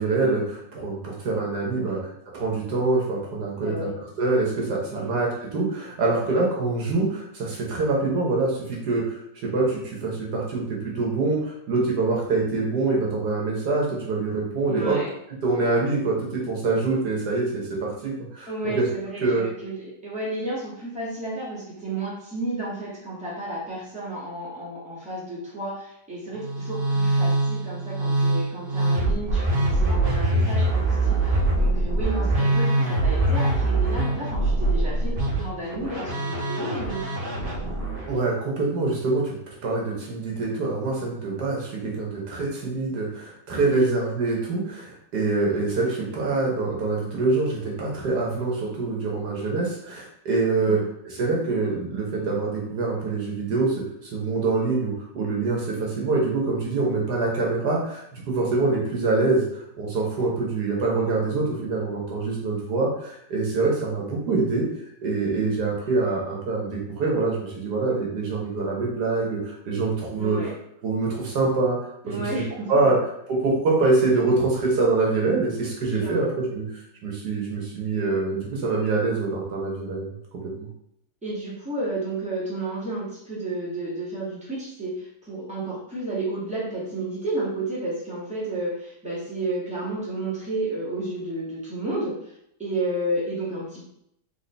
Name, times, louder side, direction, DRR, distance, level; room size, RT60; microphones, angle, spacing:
voice 1, 0.0-15.0 15.4-18.9 19.2-19.5 38.1-39.4 39.6-64.6 65.0-70.4 70.8-71.8 72.1-72.4 72.7-73.0 73.3-80.0 80.6-80.7, right 3 dB, 75° right, -2 dB, 1.6 m, -25 dB
voice 2, 3.6-3.9 4.9-5.1 6.2-6.3 14.7-15.1 18.5-37.2 43.5-43.9 50.6-50.8 70.1-70.5 72.0-72.9 76.0-76.3 81.2-92.3 92.6-93.8, right 2 dB, 5° right, -8 dB, 1.6 m, -32 dB
Musical instrument, 26.3-38.1, right 2 dB, 40° right, 0.8 m, -23 dB
4.1 x 3.6 x 3.3 m, 0.76 s
omnidirectional pair, 1.8 m